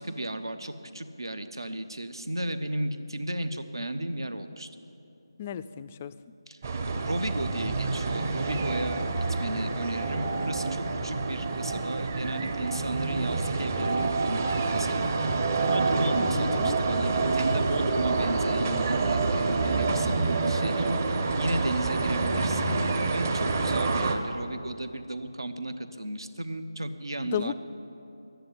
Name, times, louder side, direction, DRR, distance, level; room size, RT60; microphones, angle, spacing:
voice 1, 0.0-4.7 6.5-6.6 7.0-9.0 9.3-15.4 15.7-22.7 23.1-27.5, right 1 dB, 75° right, 10 dB, 1.1 m, -34 dB
voice 2, 5.4-6.1 16.2-16.8 20.0-20.3 27.2-27.5, left 9 dB, 20° left, 13 dB, 0.3 m, -34 dB
sound 1, 6.6-24.2, right 3 dB, 35° right, 1.0 m, -27 dB
11.5 x 10.5 x 9.7 m, 2.9 s
figure-of-eight pair, 160°, 2 cm